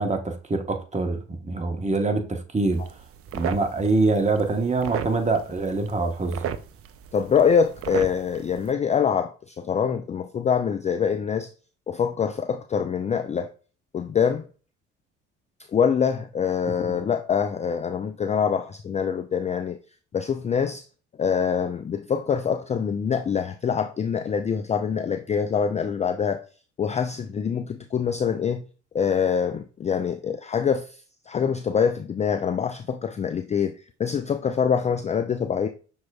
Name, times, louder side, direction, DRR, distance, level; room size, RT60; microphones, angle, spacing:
voice 1, 0.0-2.8 3.3-6.4 16.8-16.9, right 3 dB, 20° right, 1.1 m, -25 dB
sound 1, 2.7-8.7, right 9 dB, 40° right, 0.5 m, -36 dB
voice 2, 7.1-11.5 11.9-13.5 13.9-14.4 15.7-19.8 20.1-20.8 21.2-26.4 26.8-28.6 28.9-30.9 31.3-33.7 34.0-35.7, left 7 dB, 20° left, 0.3 m, -24 dB
6.1 x 3.5 x 2.3 m
hypercardioid pair, 55°, 35 cm